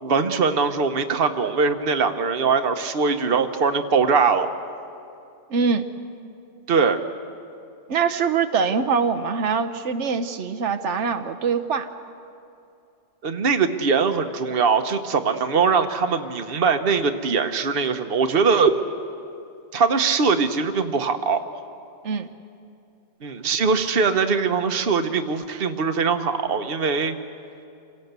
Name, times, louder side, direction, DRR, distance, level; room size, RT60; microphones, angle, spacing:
voice 1, 0.0-4.5 6.7-7.0 13.2-18.7 19.7-21.4 23.2-27.2, right 5 dB, 55° right, 8 dB, 1.2 m, -21 dB
voice 2, 5.5-5.9 7.9-11.9 22.0-22.3, right 5 dB, 90° right, 8 dB, 1.2 m, -23 dB
27.5 x 17.5 x 8.2 m, 2.6 s
omnidirectional pair, 1.2 m